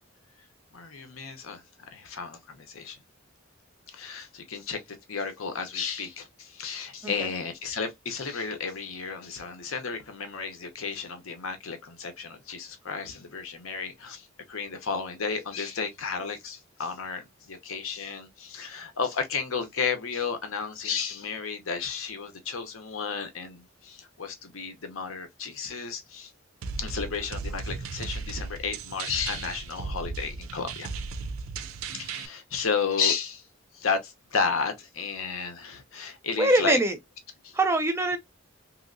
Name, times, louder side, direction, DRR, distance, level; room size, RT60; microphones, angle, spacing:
voice 1, 0.7-1.6 1.9-3.0 3.9-26.3 26.8-30.9 31.9-33.4 33.7-36.8 37.4-37.5, left 5 dB, 90° left, 0.8 m, -33 dB
sound 1, 26.6-32.3, right 4 dB, 80° right, 0.4 m, -36 dB
voice 2, 36.4-37.0 37.5-38.2, right 1 dB, 15° right, 0.5 m, -23 dB
3.1 x 2.8 x 2.6 m
head